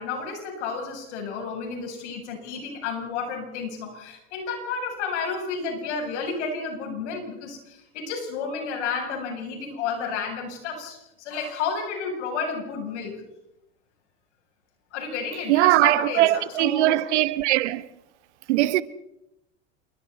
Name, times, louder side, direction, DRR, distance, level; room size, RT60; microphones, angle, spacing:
voice 1, 0.0-13.1 14.9-17.0, left 5 dB, 80° left, 7.9 m, -31 dB
voice 2, 15.5-17.8 18.5-18.8, right 16 dB, 80° right, 1.2 m, -20 dB
28.0 x 24.0 x 4.2 m
supercardioid pair, 100°, 34 cm